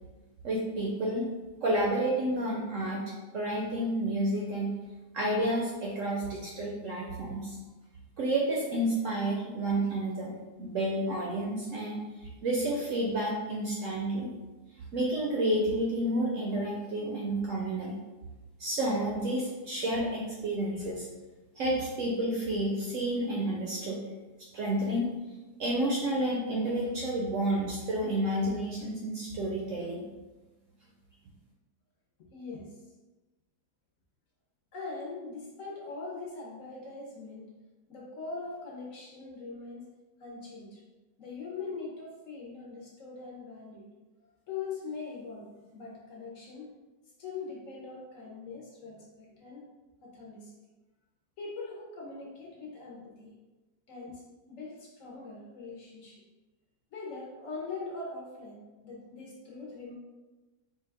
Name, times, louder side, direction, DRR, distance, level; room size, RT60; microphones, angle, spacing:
voice 1, 0.4-1.3 1.6-4.7 5.1-7.6 8.2-14.3 14.9-18.0 18.6-21.1 21.6-24.0 24.5-25.1 25.6-30.0, right 1 dB, 70° right, -3 dB, 0.8 m, -30 dB
voice 2, 32.2-32.8 34.7-37.5 37.9-39.9 40.2-40.8 41.2-43.9 44.2-46.7 47.2-49.7 50.0-50.5 51.4-53.4 53.9-54.2 54.5-56.2 56.9-60.0, left 4 dB, 65° left, -3 dB, 0.9 m, -42 dB
4.0 x 2.2 x 3.3 m, 1.2 s
omnidirectional pair, 1.8 m